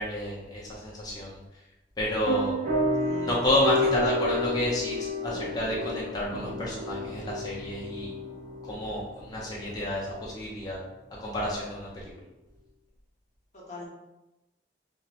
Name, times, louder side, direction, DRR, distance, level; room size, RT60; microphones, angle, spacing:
voice 1, 0.0-1.4 2.0-2.5 3.2-8.1 8.7-10.8 11.2-12.0, left 1 dB, 20° left, -6 dB, 0.5 m, -30 dB
sound 1, 2.3-10.4, left 1 dB, 45° right, 0.9 m, -31 dB
voice 2, 3.0-3.4 13.5-13.9, left 1 dB, 40° left, -6 dB, 1.0 m, -42 dB
2.7 x 2.5 x 3.0 m, 0.96 s
head